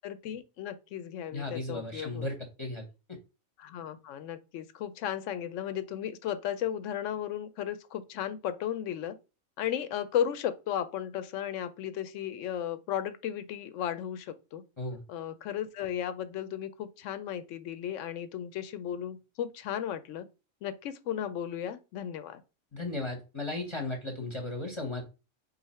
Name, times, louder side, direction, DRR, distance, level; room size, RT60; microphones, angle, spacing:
voice 1, 0.0-2.3 3.6-9.2 9.6-14.6 15.1-20.3 20.6-22.4, left 10 dB, 70° left, 0.9 m, -35 dB
voice 2, 1.3-3.2 14.8-15.0 22.7-25.0, left 2 dB, 25° left, 0.8 m, -36 dB
4.0 x 2.7 x 4.2 m
omnidirectional pair, 1.4 m